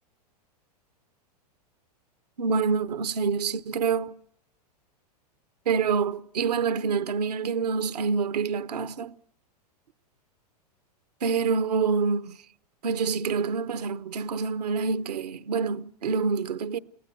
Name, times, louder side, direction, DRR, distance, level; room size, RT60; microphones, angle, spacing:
voice 1, 2.4-4.2 5.7-9.1 11.2-12.3 12.8-16.8, right 5 dB, 80° right, 0.9 m, -26 dB
29.0 x 16.5 x 9.2 m
hypercardioid pair, 105°, 20 cm